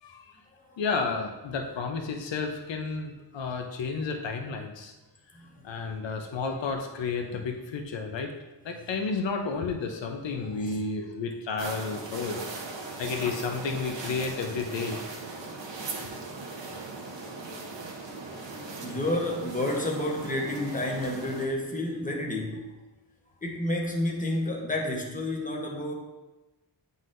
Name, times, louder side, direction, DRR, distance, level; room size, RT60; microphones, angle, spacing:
voice 1, 0.0-0.4 0.8-4.9 5.6-8.3 8.6-12.4 13.0-15.0 16.9-17.6, left 4 dB, 75° left, 4 dB, 0.7 m, -32 dB
voice 2, 5.3-5.7 10.3-10.8 15.3-16.2 16.6-16.7 17.3-17.8 18.3-18.4 18.8-22.7 23.4-25.9, left 1 dB, 20° left, 0 dB, 0.9 m, -31 dB
sound 1, 11.6-21.5, right 3 dB, 70° right, 1.0 m, -39 dB
9.2 x 4.0 x 2.6 m, 1.1 s
wide cardioid pair, 125°, 45 cm